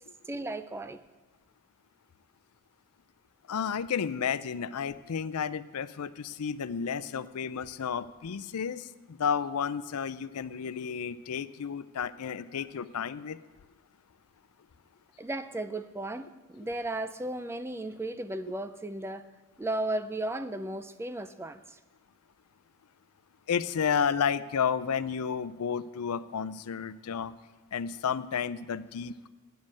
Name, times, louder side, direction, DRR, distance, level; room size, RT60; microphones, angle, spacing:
voice 1, 0.3-1.0 15.2-19.2 19.6-21.8, right 1 dB, 10° right, 11 dB, 0.4 m, -35 dB
voice 2, 3.5-13.4 23.5-27.3 27.7-29.3, left 7 dB, 80° left, 14 dB, 0.5 m, -32 dB
9.2 x 7.5 x 8.5 m, 1.2 s
head